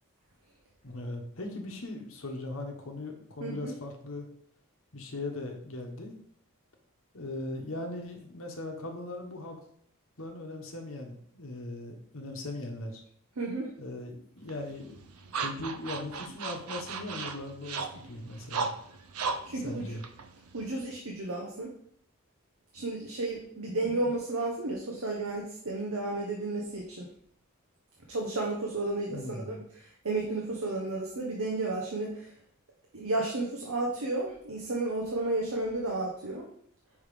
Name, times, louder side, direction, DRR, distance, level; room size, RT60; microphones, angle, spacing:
voice 1, 0.8-4.3 4.9-6.1 7.1-9.6 10.2-13.0 13.8-15.0 15.3-18.7 19.5-20.0 23.6-23.8 29.1-29.6, left 2 dB, 65° left, 3 dB, 1.1 m, -39 dB
voice 2, 3.4-3.7 13.4-13.7 19.4-20.0 20.5-21.7 22.7-27.1 28.1-32.3 32.9-36.5, right 2 dB, 75° right, -1 dB, 1.0 m, -32 dB
sound 1, 14.5-21.0, right 4 dB, 90° right, 0.5 m, -37 dB
5.4 x 3.7 x 5.0 m, 0.64 s
head